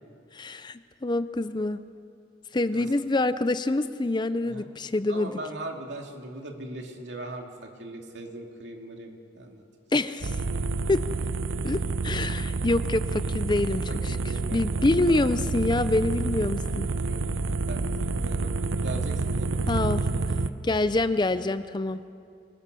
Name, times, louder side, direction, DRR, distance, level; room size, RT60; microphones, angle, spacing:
voice 1, 0.3-1.8 2.5-5.3 9.9-10.4 10.9-11.0 11.6-16.9 19.7-20.0 20.6-22.0, left 2 dB, 25° left, 12 dB, 0.5 m, -26 dB
voice 2, 5.1-9.6 11.2-11.3 13.9-15.2 15.6-15.8 16.3-16.4 16.9-18.5 18.8-19.7, right 1 dB, 60° right, 2 dB, 2.8 m, -40 dB
sound 1, 10.2-20.5, right 3 dB, 85° right, 0.9 m, -28 dB
25.0 x 21.0 x 6.9 m, 2.4 s
head